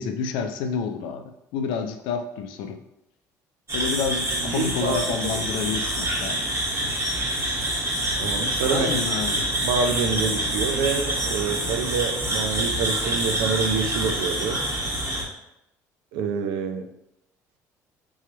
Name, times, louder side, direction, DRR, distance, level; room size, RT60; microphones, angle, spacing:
voice 1, 0.0-2.8 3.7-6.4 8.7-9.5, left 6 dB, 65° left, 7 dB, 0.4 m, -29 dB
sound 1, 3.7-15.2, right 1 dB, 35° right, 1.5 m, -26 dB
voice 2, 4.4-5.0 5.4-5.5 8.2-9.0 9.6-14.6 16.1-16.9, right 5 dB, 70° right, 6 dB, 0.5 m, -27 dB
4.7 x 2.9 x 2.9 m, 0.84 s
hypercardioid pair, 60°, 9 cm